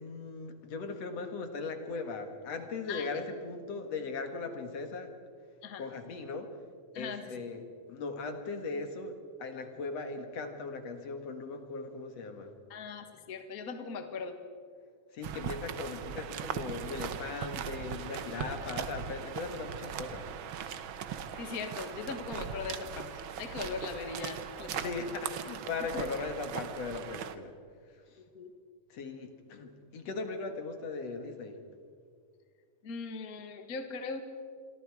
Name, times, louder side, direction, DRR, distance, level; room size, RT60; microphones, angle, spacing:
voice 1, 0.0-5.1 5.8-6.6 7.0-7.6 7.9-12.6 15.1-20.3 24.7-27.5 27.9-28.2 28.9-31.6, left 4 dB, 55° left, 6 dB, 2.6 m, -39 dB
voice 2, 6.9-7.4 12.7-14.4 21.3-25.1 25.9-26.0 28.3-28.5 32.8-34.2, left 5 dB, 40° left, 6 dB, 1.5 m, -40 dB
sound 1, 15.2-27.3, right 8 dB, 80° right, 1.1 m, -39 dB
28.0 x 23.5 x 4.8 m, 2.1 s
omnidirectional pair, 3.6 m